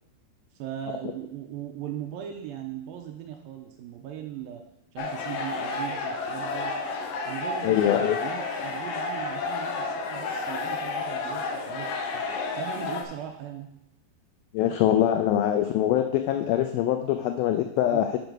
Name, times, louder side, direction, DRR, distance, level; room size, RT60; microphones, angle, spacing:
voice 1, 0.6-4.6 4.9-6.7 7.3-12.2 12.5-13.7 17.9-18.0, right 10 dB, 80° right, 2 dB, 2.2 m, -38 dB
sound 1, 5.0-13.0, left 3 dB, 70° left, 2.2 m, -31 dB
voice 2, 7.6-8.2 14.5-18.2, left 11 dB, 90° left, 6 dB, 2.1 m, -23 dB
7.0 x 5.2 x 6.2 m, 0.80 s
omnidirectional pair, 4.8 m